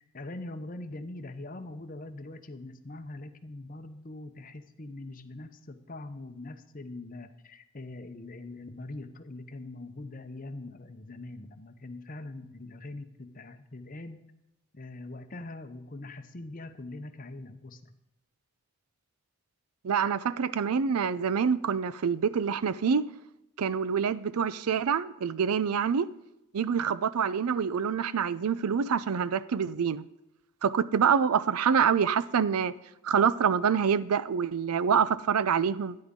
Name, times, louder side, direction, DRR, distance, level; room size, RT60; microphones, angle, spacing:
voice 1, 0.0-14.3 14.7-18.0, left 2 dB, 35° left, 0.7 m, -42 dB
voice 2, 19.8-23.0 23.6-26.1 26.5-30.0 30.6-32.7 33.0-36.0, right 7 dB, 85° right, 0.5 m, -26 dB
12.5 x 9.7 x 3.7 m
head